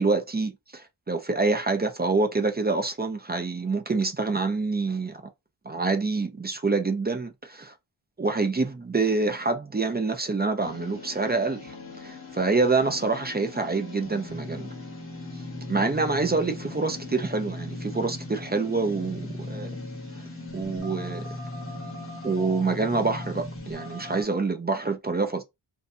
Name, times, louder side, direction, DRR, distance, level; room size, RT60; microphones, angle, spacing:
voice 1, 0.0-5.2 5.7-7.7 8.2-14.7 15.7-19.7 20.5-21.4 22.2-25.4, right 3 dB, 20° right, 0.4 m, -26 dB
sound 1, 10.6-24.2, left 2 dB, 25° left, 0.8 m, -38 dB
2.6 x 2.1 x 2.6 m
wide cardioid pair, 70°, 48 cm